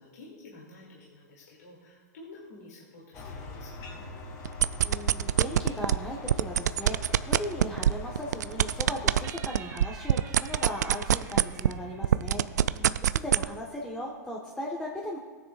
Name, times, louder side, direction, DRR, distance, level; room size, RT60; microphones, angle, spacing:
voice 1, 0.0-4.1 12.4-13.2, left 2 dB, 70° left, -5 dB, 3.0 m, -50 dB
sound 1, 3.1-9.3, left 2 dB, 40° left, 2.9 m, -43 dB
sound 2, 4.5-6.0 6.3-11.8 12.0-13.5, right 10 dB, 75° right, 0.4 m, -23 dB
voice 2, 4.8-12.5 13.1-15.2, left 1 dB, 10° left, -3 dB, 1.5 m, -37 dB
sound 3, 9.2-12.8, right 5 dB, 30° right, 2.4 m, -49 dB
18.5 x 9.6 x 2.6 m, 1.5 s
hypercardioid pair, 105°, 9 cm